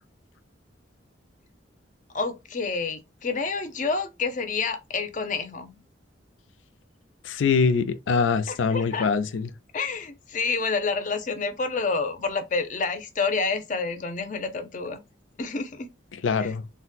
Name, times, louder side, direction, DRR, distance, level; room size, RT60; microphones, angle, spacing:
voice 1, 2.1-5.7 8.5-9.1 9.7-15.0 15.4-15.9 16.4-16.5, left 4 dB, 45° left, 0.6 m, -28 dB
voice 2, 7.2-9.5 16.1-16.6, left 5 dB, 85° left, 0.5 m, -23 dB
4.0 x 2.2 x 2.3 m
head